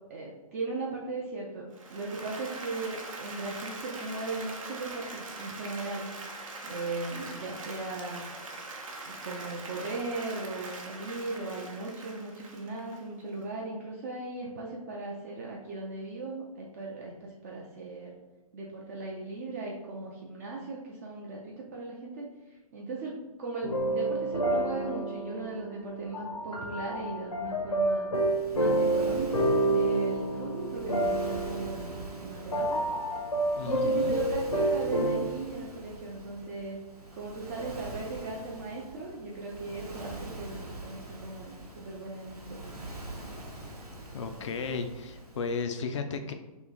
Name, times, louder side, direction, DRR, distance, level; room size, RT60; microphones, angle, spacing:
voice 1, 0.1-6.1 6.6-8.3 9.0-18.2 18.5-28.1 28.5-32.8 33.6-36.8 37.1-42.7, right 3 dB, 25° right, -3 dB, 0.4 m, -38 dB
Applause, 1.7-13.4, right 2 dB, 60° right, 0.7 m, -42 dB
sound 1, 23.6-35.2, right 1 dB, 75° left, 0.8 m, -29 dB
Waves surf, 28.1-45.6, right 1 dB, 85° right, 0.9 m, -44 dB
voice 2, 33.6-34.2 44.1-46.3, left 4 dB, 50° left, 6 dB, 0.4 m, -34 dB
3.0 x 3.0 x 3.7 m, 1.2 s
figure-of-eight pair, 125°, 19 cm